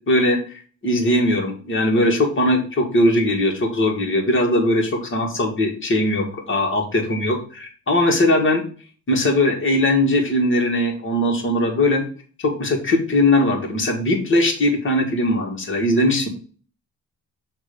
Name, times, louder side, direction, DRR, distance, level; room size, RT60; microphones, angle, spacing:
voice 1, 0.1-8.6 9.1-12.0 12.4-16.3, left 1 dB, 40° left, 1 dB, 2.0 m, -20 dB
6.2 x 3.0 x 5.1 m, 0.42 s
cardioid pair, 90°, 30 cm